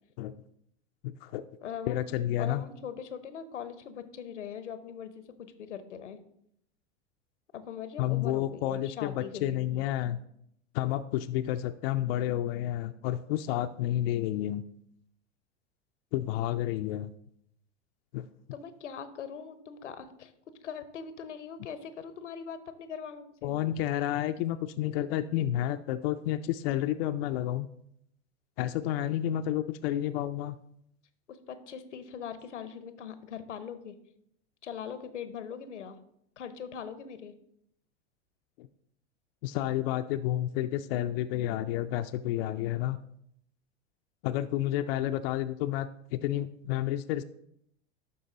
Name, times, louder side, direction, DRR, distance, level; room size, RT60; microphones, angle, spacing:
voice 1, 1.0-1.4 1.9-2.6 8.0-10.2 10.7-14.6 16.1-17.1 18.1-18.3 23.4-27.7 28.6-30.6 38.6-38.7 39.4-43.0 44.2-47.2, left 13 dB, 55° left, 9 dB, 0.5 m, -30 dB
voice 2, 1.6-2.0 2.4-6.2 7.5-9.8 18.5-20.3 20.6-23.6 31.3-33.9 34.6-36.0 36.4-37.3, left 7 dB, 85° left, 11 dB, 0.8 m, -41 dB
11.5 x 4.0 x 3.9 m, 0.72 s
hypercardioid pair, 95°, 35 cm